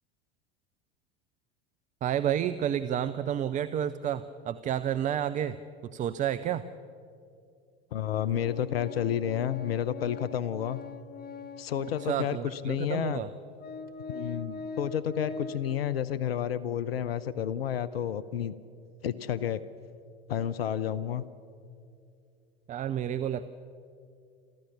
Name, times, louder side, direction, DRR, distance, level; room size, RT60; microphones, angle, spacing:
voice 1, 2.0-5.6 5.9-6.6 12.0-13.3 22.7-23.5, right 10 dB, 25° right, 11 dB, 0.5 m, -30 dB
voice 2, 7.9-10.8 11.6-13.2 14.1-18.5 19.0-19.6 20.3-21.3, left 9 dB, 65° left, 17 dB, 0.7 m, -30 dB
Organ, 8.5-12.4 13.1-13.2 13.6-15.7, left 4 dB, 30° left, 1.0 m, -42 dB
27.5 x 14.5 x 7.1 m, 2.5 s
figure-of-eight pair, 75°, 32 cm